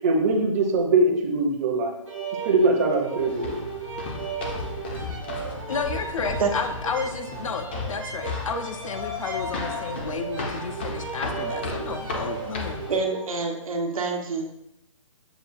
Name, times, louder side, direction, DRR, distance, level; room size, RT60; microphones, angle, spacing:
voice 1, 0.0-1.9 2.4-3.5, right 2 dB, 30° right, 0 dB, 0.6 m, -22 dB
sound 1, 2.1-13.3, right 5 dB, 65° right, 1.1 m, -36 dB
sound 2, 3.2-13.0, left 3 dB, 20° left, 0.4 m, -34 dB
voice 2, 5.7-12.8, left 4 dB, 75° left, 7 dB, 0.6 m, -32 dB
voice 3, 12.9-14.5, right 4 dB, 85° right, 2 dB, 0.9 m, -27 dB
6.7 x 2.3 x 2.5 m, 0.81 s
hypercardioid pair, 165°, 17 cm